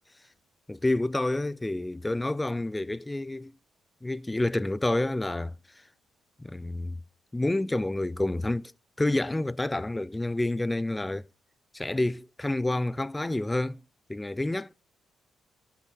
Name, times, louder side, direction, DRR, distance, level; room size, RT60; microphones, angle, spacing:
voice 1, 0.7-3.5 4.0-5.5 6.4-7.0 7.3-8.7 9.0-11.3 11.7-13.8 14.1-14.7, left 2 dB, 15° left, 0.5 m, -28 dB
10.0 x 7.7 x 6.3 m
cardioid pair, 90°, 0 cm